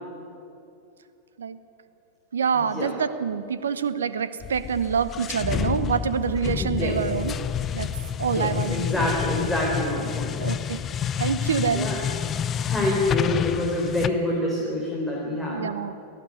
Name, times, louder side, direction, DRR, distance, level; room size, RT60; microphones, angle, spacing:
voice 1, 2.3-7.3 7.7-7.9 8.2-9.1 10.3-10.8 11.2-11.9 15.5-15.9, right 6 dB, 65° right, 14 dB, 1.0 m, -26 dB
sound 1, 4.4-14.1, left 9 dB, 25° left, 0.6 m, -29 dB
voice 2, 6.6-7.0 8.4-10.4 11.7-12.0 12.7-15.6, left 1 dB, 5° left, -4 dB, 4.1 m, -26 dB
18.0 x 15.5 x 9.7 m, 2.7 s
figure-of-eight pair, 90°, 0 cm